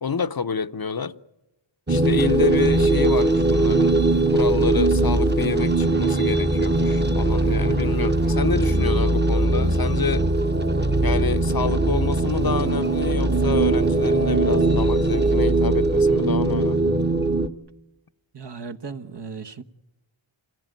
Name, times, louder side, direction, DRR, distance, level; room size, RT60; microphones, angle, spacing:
voice 1, 0.0-1.1 1.9-4.0 4.3-10.3 11.0-17.0, left 6 dB, 50° left, 0.7 m, -28 dB
sound 1, 1.9-17.5, right 2 dB, 20° right, 1.1 m, -20 dB
sound 2, 2.4-8.3, right 1 dB, 80° right, 3.1 m, -46 dB
voice 2, 18.3-19.6, right 5 dB, 55° right, 1.2 m, -36 dB
27.0 x 15.0 x 9.3 m
wide cardioid pair, 55°, 48 cm